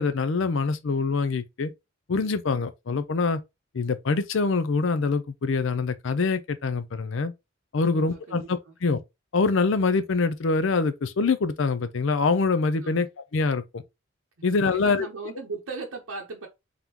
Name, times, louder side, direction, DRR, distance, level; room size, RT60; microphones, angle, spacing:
voice 1, 0.0-1.7 2.1-3.4 3.7-7.3 7.7-9.0 9.3-13.8 14.4-15.1, left 4 dB, 65° left, 0.5 m, -25 dB
voice 2, 7.8-8.4 12.8-13.1 14.4-16.5, right 3 dB, 80° right, 0.8 m, -38 dB
3.7 x 3.6 x 2.9 m
head